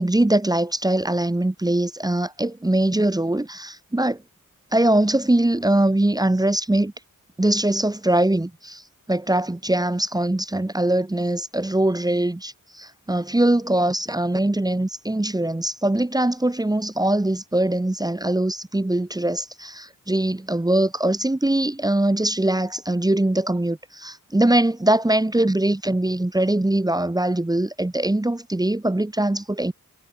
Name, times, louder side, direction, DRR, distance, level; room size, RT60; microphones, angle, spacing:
voice 1, 0.0-4.2 4.7-6.9 7.4-8.8 9.1-29.7, right 1 dB, 10° right, 1.6 m, -22 dB
wide cardioid pair, 150°, 33 cm